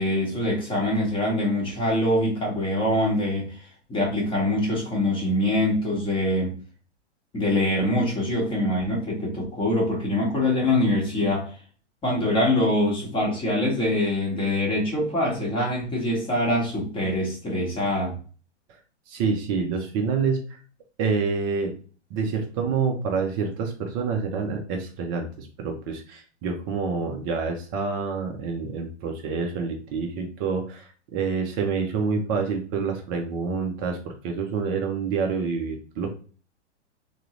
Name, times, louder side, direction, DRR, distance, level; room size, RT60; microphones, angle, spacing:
voice 1, 0.0-3.6 3.9-6.6 7.3-11.5 12.0-18.2, left 1 dB, 15° left, -2 dB, 0.9 m, -24 dB
voice 2, 19.1-20.4 21.0-21.7 22.1-36.1, right 5 dB, 20° right, 3 dB, 0.3 m, -27 dB
3.4 x 2.0 x 2.9 m, 0.39 s
figure-of-eight pair, 110°, 35 cm